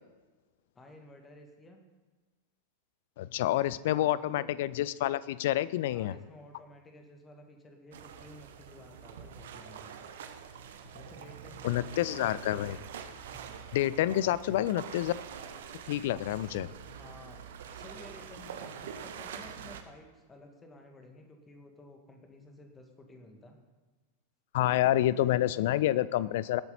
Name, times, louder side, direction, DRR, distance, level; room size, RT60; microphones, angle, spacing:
voice 1, 0.7-1.8 3.9-4.5 5.9-9.9 10.9-12.6 13.3-13.7 14.2-14.9 16.4-17.4 17.7-23.6, left 1 dB, 15° left, 3 dB, 2.0 m, -53 dB
voice 2, 3.2-6.1 11.6-12.8 13.7-15.1 15.9-16.7 24.5-26.6, left 13 dB, 55° left, 18 dB, 0.4 m, -28 dB
sound 1, 7.9-19.8, right 7 dB, 60° right, 1.0 m, -45 dB
19.5 x 8.1 x 4.2 m, 1.3 s
figure-of-eight pair, 90°, 0 cm